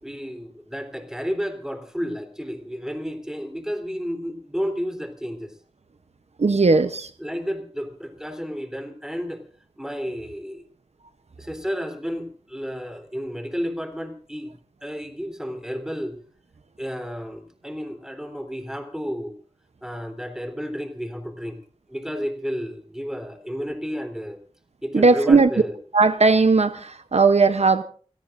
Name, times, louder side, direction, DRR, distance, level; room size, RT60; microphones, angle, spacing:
voice 1, 0.0-5.5 7.2-9.4 9.8-10.6 11.4-14.6 14.8-16.2 16.8-19.4 19.8-21.6 21.9-24.4 24.8-25.7, equal, 5° right, 6 dB, 3.6 m, -31 dB
voice 2, 6.4-7.1 24.9-25.5 25.9-27.8, right 4 dB, 65° right, 10 dB, 0.9 m, -17 dB
30.0 x 18.0 x 2.6 m, 0.42 s
wide cardioid pair, 65°, 12 cm